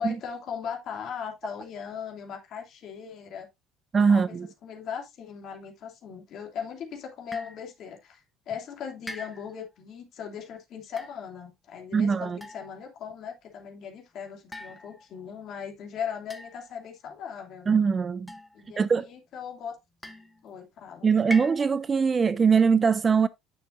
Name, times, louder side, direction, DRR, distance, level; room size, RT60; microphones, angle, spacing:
voice 1, 0.0-3.5 4.1-4.4 4.6-17.7 18.5-19.7 20.4-21.1, left 7 dB, 45° left, 2.5 m, -38 dB
voice 2, 3.9-4.5 11.9-12.4 17.7-18.3 18.8-19.1 21.0-23.3, right 6 dB, 20° right, 0.3 m, -22 dB
sound 1, 7.3-7.7 9.1-9.7 10.8-11.2 12.4-13.0 14.5-15.3 16.3-16.9 18.3-18.9 20.0-20.5 21.3-21.9, left 1 dB, 5° left, 0.9 m, -41 dB
9.8 x 6.6 x 2.6 m
cardioid pair, 160°, 0 cm